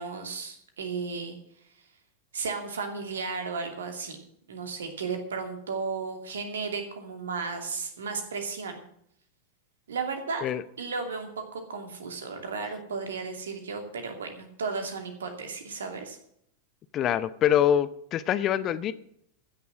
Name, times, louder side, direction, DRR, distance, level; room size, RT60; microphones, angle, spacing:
voice 1, 0.0-1.4 2.3-4.2 4.5-8.8 9.9-10.5 10.8-16.2, right 4 dB, 65° right, 2.6 m, -34 dB
voice 2, 16.9-18.9, left 10 dB, 30° left, 0.6 m, -24 dB
15.0 x 6.9 x 7.6 m
figure-of-eight pair, 90°, 0 cm